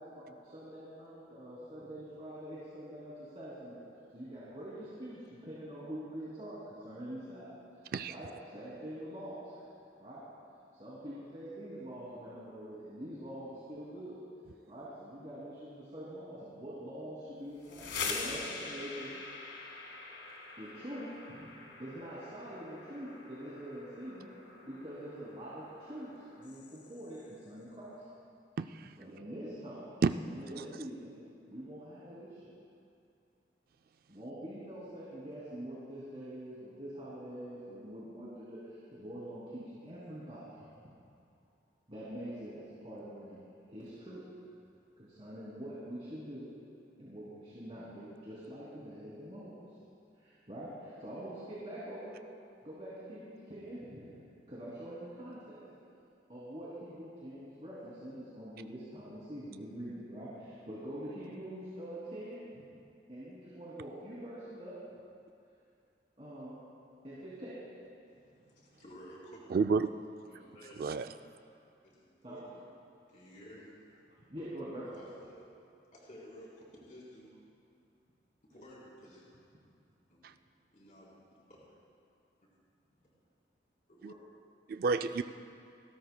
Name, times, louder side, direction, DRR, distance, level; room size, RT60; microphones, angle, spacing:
voice 1, 0.0-3.8 4.1-7.5 7.8-9.7 10.0-10.2 10.7-14.2 14.7-19.1 20.6-21.5 21.8-24.3 24.6-26.1 26.4-28.0 29.0-29.8 30.3-31.1 31.5-32.5 34.1-40.7 41.9-43.4 43.7-44.2 45.0-46.5 47.0-49.5 50.2-52.1 52.6-55.6 56.3-62.6 63.1-64.7 66.2-66.6 67.0-67.5 72.2-72.4 74.3-74.9, right 1 dB, 35° right, -9 dB, 2.8 m, -45 dB
sound 1, 17.5-27.2, left 4 dB, 80° left, 1.6 m, -44 dB
voice 2, 28.6-28.9 30.0-30.1 69.5-69.9 70.8-71.1 80.2-80.3 84.0-84.1 84.7-85.2, right 4 dB, 55° right, 10 dB, 0.3 m, -30 dB
voice 3, 68.1-69.4 70.3-70.8 71.8-72.6 73.0-74.3 74.9-75.5 75.9-77.3 78.4-79.2 80.1-80.4 80.7-81.1 81.5-81.6 83.0-83.1 83.9-84.1, equal, 45° left, -6 dB, 3.9 m, -54 dB
29.0 x 13.0 x 2.3 m, 2.5 s
head